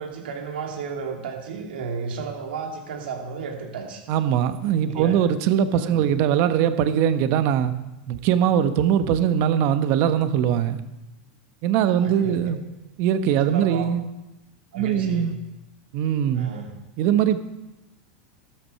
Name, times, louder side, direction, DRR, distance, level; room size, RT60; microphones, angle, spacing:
voice 1, 0.0-4.0 4.8-5.2 5.7-6.0 11.8-12.4 13.4-13.9 14.7-15.3 16.3-16.7, right 5 dB, 80° right, 1 dB, 2.7 m, -33 dB
voice 2, 4.1-7.7 8.1-10.8 11.6-12.6 13.0-14.0 14.7-15.3 15.9-16.5 17.0-17.4, right 9 dB, 55° right, 10 dB, 1.1 m, -21 dB
13.0 x 7.9 x 5.7 m, 0.97 s
hypercardioid pair, 110°, 5 cm